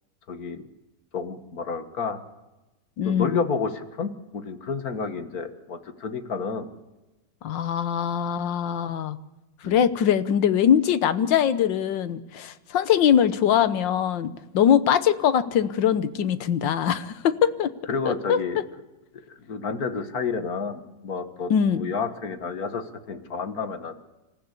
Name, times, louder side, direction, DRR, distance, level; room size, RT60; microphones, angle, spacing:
voice 1, 0.3-0.7 1.1-2.2 3.0-6.7 9.6-9.9 17.9-18.6 19.5-24.0, left 5 dB, 55° left, 9 dB, 1.9 m, -30 dB
voice 2, 3.0-3.4 7.4-9.2 9.6-17.7 18.0-18.4 21.5-21.8, left 9 dB, 85° left, 14 dB, 1.7 m, -22 dB
27.0 x 14.5 x 8.2 m, 1.0 s
omnidirectional pair, 1.9 m